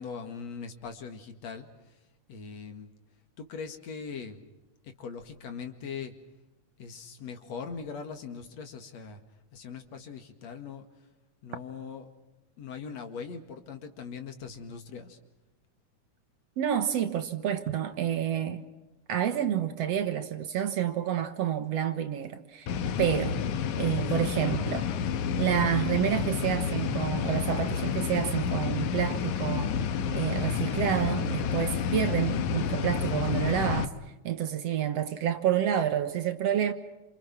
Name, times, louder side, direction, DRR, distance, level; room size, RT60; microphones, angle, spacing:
voice 1, 0.0-1.9 2.3-2.9 3.4-4.4 4.8-6.1 6.8-9.2 9.5-10.8 11.4-12.1 12.6-15.2, left 5 dB, 65° left, 3.1 m, -41 dB
voice 2, 16.6-18.6 19.1-22.7 23.0-23.4 23.8-24.9 25.4-29.8 30.1-33.9 34.2-36.7, right 10 dB, 60° right, 2.3 m, -29 dB
sound 1, 22.7-33.9, left 7 dB, 80° left, 2.5 m, -30 dB
28.5 x 28.0 x 6.0 m
omnidirectional pair, 3.4 m